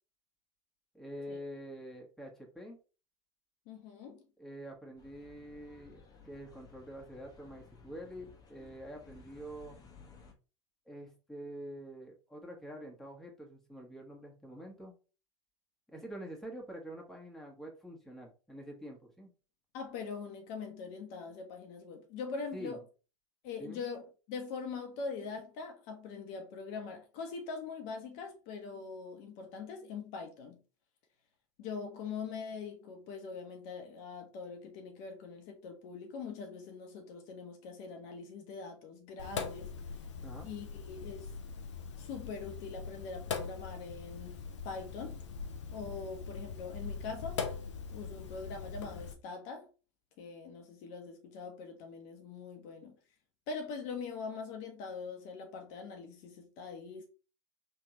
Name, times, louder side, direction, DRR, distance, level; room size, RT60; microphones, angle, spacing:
voice 1, 0.9-2.8 4.4-9.8 10.8-14.9 15.9-19.3 22.5-22.8 23.6-23.8 40.2-40.5, equal, ahead, 1.5 m, -46 dB
voice 2, 3.7-4.2 19.7-22.8 23.4-30.6 31.6-39.7 40.4-41.3 42.0-45.2 45.7-47.4 47.9-49.7 50.2-52.9 53.5-57.1, left 5 dB, 55° left, 1.1 m, -43 dB
sound 1, 5.0-10.3, left 5 dB, 25° left, 1.1 m, -57 dB
Sink (filling or washing), 39.2-49.1, left 5 dB, 75° left, 0.7 m, -42 dB
3.8 x 3.4 x 3.0 m
figure-of-eight pair, 80°, 15 cm